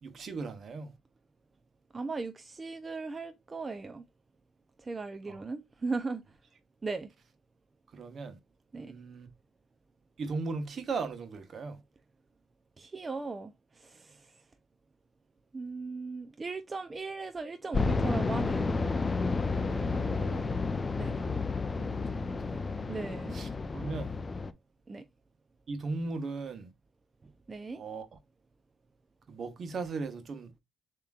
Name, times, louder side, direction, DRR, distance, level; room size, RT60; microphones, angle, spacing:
voice 1, 0.0-0.9 5.3-5.4 7.9-8.4 8.7-9.3 10.2-11.8 19.7-20.5 21.7-22.6 23.3-24.1 25.7-26.7 27.7-28.2 29.3-30.5, right 4 dB, 50° right, 1.1 m, -38 dB
voice 2, 1.9-4.0 4.8-6.2 6.8-7.1 8.7-8.9 12.8-14.4 15.5-18.7 21.0-21.1 22.9-23.4 24.9-25.0 27.5-27.8, right 3 dB, 30° right, 0.5 m, -38 dB
sound 1, 17.7-24.5, left 3 dB, 30° left, 0.5 m, -31 dB
7.1 x 2.9 x 2.4 m
cardioid pair, 90°, 0 cm